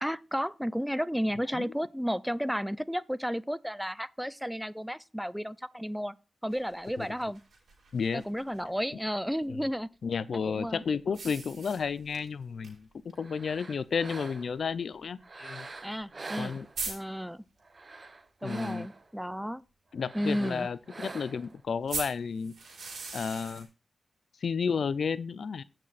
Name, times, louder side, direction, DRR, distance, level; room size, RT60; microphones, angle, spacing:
voice 1, 0.0-6.2 6.4-7.4 8.1-9.9 10.3-10.8 15.8-16.6 16.9-17.4 18.4-19.6 20.1-20.7, equal, ahead, 0.4 m, -33 dB
sound 1, 6.5-8.6 11.1-12.3 12.6-12.7 13.1-13.2 14.1-14.2 16.0-16.1 16.3-16.4 16.8-17.0 21.9-23.6, right 4 dB, 85° right, 3.5 m, -39 dB
voice 2, 10.0-15.7 16.4-16.7 18.4-18.9 19.9-22.5 23.1-23.7 24.4-25.6, left 6 dB, 75° left, 0.4 m, -32 dB
sound 2, 13.1-14.7 15.2-17.1 17.6-19.1 20.0-21.6, right 3 dB, 40° right, 0.9 m, -45 dB
16.0 x 6.0 x 2.5 m
cardioid pair, 75°, 0 cm